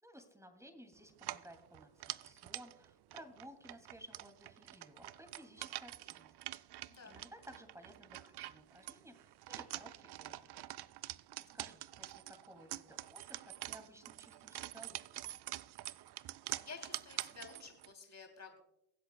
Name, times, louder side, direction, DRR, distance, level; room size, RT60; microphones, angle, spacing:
voice 1, 0.0-6.3 7.1-10.6 11.5-15.3, equal, 5° right, 6 dB, 2.6 m, -57 dB
sound 1, 1.1-17.9, right 15 dB, 65° right, 0.5 m, -46 dB
voice 2, 6.9-7.2 16.6-18.6, left 4 dB, 40° left, 4 dB, 3.1 m, -52 dB
23.0 x 8.0 x 2.3 m, 0.82 s
cardioid pair, 60°, 42 cm